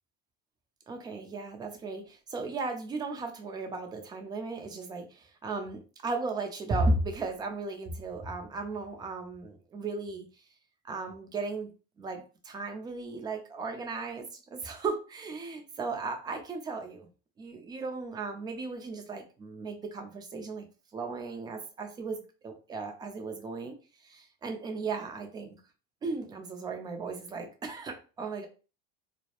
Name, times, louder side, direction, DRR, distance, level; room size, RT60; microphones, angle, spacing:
voice 1, 0.9-10.3 10.9-11.7 12.0-17.1 17.4-20.7 20.9-23.7 24.0-25.6 26.0-28.5, right 3 dB, 15° right, 4 dB, 0.3 m, -35 dB
2.2 x 2.0 x 2.8 m, 0.34 s
cardioid pair, 145°, 30 cm